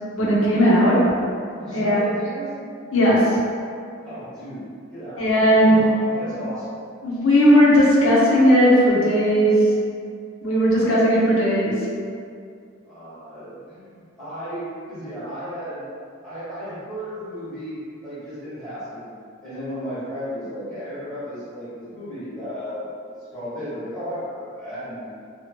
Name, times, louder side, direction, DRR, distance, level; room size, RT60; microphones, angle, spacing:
voice 1, 0.1-1.0 1.7-2.0 2.9-3.4 5.2-5.8 7.0-9.6 10.4-11.8, equal, 90° left, -7 dB, 0.8 m, -17 dB
voice 2, 1.6-2.5 4.0-4.6 4.9-6.7 12.8-15.8 16.2-19.1 19.4-25.1, equal, 5° left, -15 dB, 1.3 m, -34 dB
2.8 x 2.4 x 2.8 m, 2.3 s
head